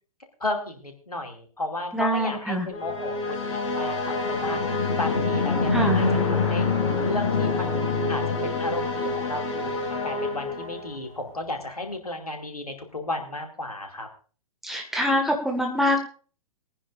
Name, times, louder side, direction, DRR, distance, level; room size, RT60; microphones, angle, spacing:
voice 1, 0.4-6.7 7.0-7.7 8.1-14.1, left 2 dB, 80° left, 4 dB, 2.5 m, -34 dB
voice 2, 1.9-2.7 5.7-6.0 14.6-16.0, equal, ahead, 1 dB, 1.8 m, -24 dB
sound 1, 2.7-11.1, left 4 dB, 50° left, 3.7 m, -26 dB
22.0 x 10.0 x 2.6 m, 0.38 s
figure-of-eight pair, 115°, 19 cm